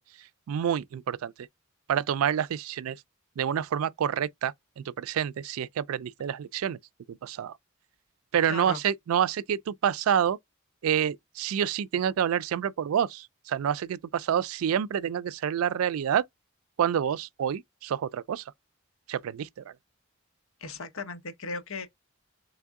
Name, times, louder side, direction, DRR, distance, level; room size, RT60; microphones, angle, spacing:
voice 1, 0.5-1.3 1.9-3.0 3.4-6.8 7.1-7.5 8.3-10.4 10.8-16.2 16.8-18.4 19.1-19.7, right 9 dB, 90° right, 0.3 m, -28 dB
voice 2, 8.4-8.8 20.6-21.9, left 3 dB, 80° left, 0.9 m, -36 dB
3.6 x 3.4 x 3.5 m
head